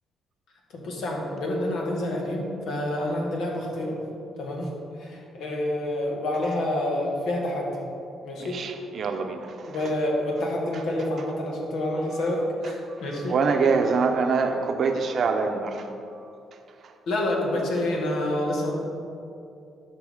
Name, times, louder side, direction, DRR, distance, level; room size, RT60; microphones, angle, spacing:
voice 1, 0.7-4.0 4.4-4.7 5.0-7.7 8.2-8.6 9.6-13.4 17.1-18.7, left 1 dB, 80° left, -1 dB, 1.7 m, -28 dB
voice 2, 8.4-9.8 13.3-15.9, right 4 dB, 55° right, 6 dB, 0.7 m, -25 dB
11.5 x 5.9 x 3.6 m, 2.6 s
cardioid pair, 90°, 0 cm